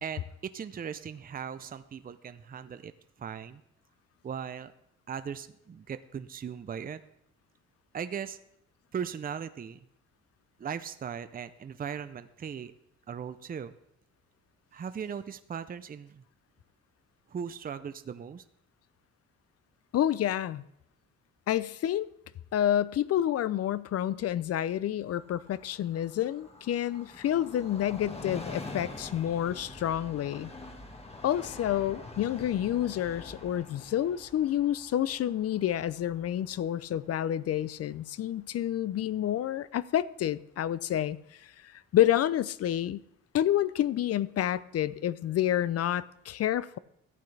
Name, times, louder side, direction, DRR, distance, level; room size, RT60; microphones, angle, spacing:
voice 1, 0.0-2.9 3.2-3.6 4.2-4.7 5.1-7.0 7.9-8.4 8.9-9.8 10.6-12.7 13.1-13.7 14.7-16.2 17.3-18.4, right 7 dB, 30° right, 0.6 m, -38 dB
voice 2, 19.9-20.6 21.5-22.1 22.5-30.5 31.2-41.2 41.4-43.0 43.3-46.8, left 11 dB, 55° left, 0.5 m, -29 dB
Train, 25.1-38.4 38.7-38.8, left 2 dB, 20° left, 1.5 m, -46 dB
14.0 x 8.4 x 3.4 m
cardioid pair, 90°, 30 cm